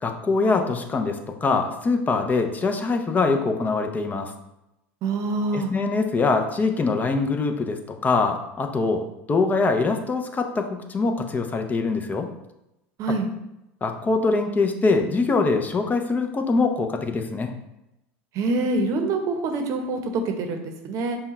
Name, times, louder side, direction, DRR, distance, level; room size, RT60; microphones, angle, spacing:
voice 1, 0.0-4.3 5.5-9.0 9.3-12.3 13.8-17.5, left 3 dB, 25° left, 5 dB, 0.6 m, -23 dB
voice 2, 5.0-5.7 13.0-13.3 18.3-21.2, right 3 dB, 50° right, 5 dB, 0.8 m, -25 dB
5.4 x 2.3 x 4.1 m, 0.90 s
hypercardioid pair, 90°, 7 cm